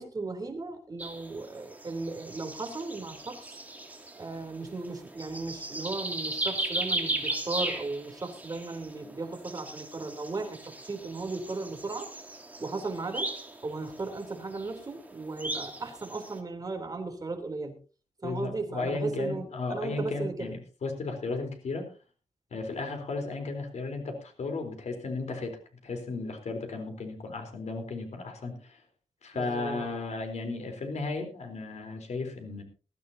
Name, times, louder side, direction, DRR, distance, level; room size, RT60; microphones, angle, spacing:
voice 1, 0.0-3.6 4.1-12.1 12.6-17.7 18.2-20.5 29.3-29.9, right 3 dB, 35° right, 4 dB, 3.3 m, -36 dB
sound 1, 1.0-16.4, right 2 dB, 15° right, 2.4 m, -37 dB
voice 2, 18.2-21.9 22.5-28.8 29.2-32.6, left 3 dB, 75° left, 5 dB, 3.8 m, -35 dB
21.0 x 14.0 x 2.8 m, 0.34 s
wide cardioid pair, 145°, 12 cm